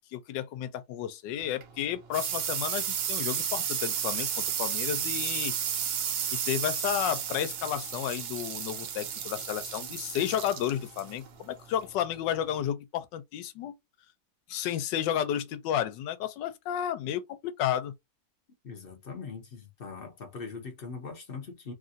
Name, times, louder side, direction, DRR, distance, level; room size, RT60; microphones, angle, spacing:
voice 1, 0.1-4.3 4.6-5.5 6.3-13.7 14.5-17.9, left 10 dB, 85° left, 1.3 m, -32 dB
sound 1, 1.4-12.7, right 8 dB, 90° right, 1.4 m, -33 dB
voice 2, 18.6-21.7, left 5 dB, 50° left, 0.6 m, -41 dB
3.2 x 2.4 x 2.6 m
omnidirectional pair, 1.9 m